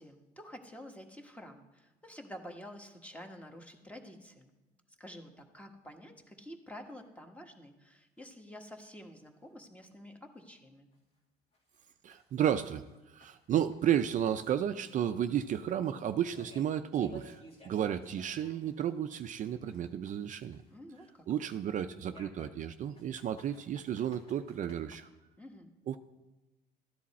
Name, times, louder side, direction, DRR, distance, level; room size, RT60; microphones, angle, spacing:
voice 1, 0.0-4.5 5.0-10.9 20.7-21.2 25.4-25.7, equal, 10° left, 4 dB, 1.3 m, -49 dB
sound 1, 8.2-8.3 8.7-8.8 9.2-9.3 9.8-9.9 10.4-10.5 10.9-11.0 11.5-14.0 14.3-18.9 19.2-21.3 22.1-25.0, left 1 dB, 35° left, 2.0 m, -58 dB
voice 2, 12.0-20.6 21.3-25.1 25.9-26.0, right 10 dB, 50° right, 9 dB, 0.5 m, -33 dB
13.5 x 10.0 x 4.2 m, 1.1 s
cardioid pair, 110°, 17 cm